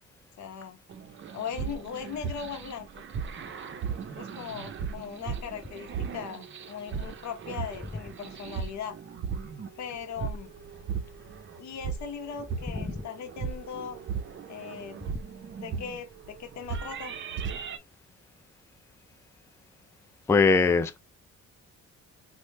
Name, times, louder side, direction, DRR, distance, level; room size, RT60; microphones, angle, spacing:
voice 1, 0.4-0.8 1.3-3.0 4.2-9.0 9.8-10.5 11.6-14.0 14.5-15.0 15.6-17.1, left 7 dB, 65° left, 0.7 m, -39 dB
sound 1, 0.9-17.8, right 6 dB, 40° right, 0.5 m, -37 dB
voice 2, 20.3-21.0, left 4 dB, 10° left, 0.3 m, -20 dB
3.1 x 2.1 x 3.1 m
cardioid pair, 90°, 30 cm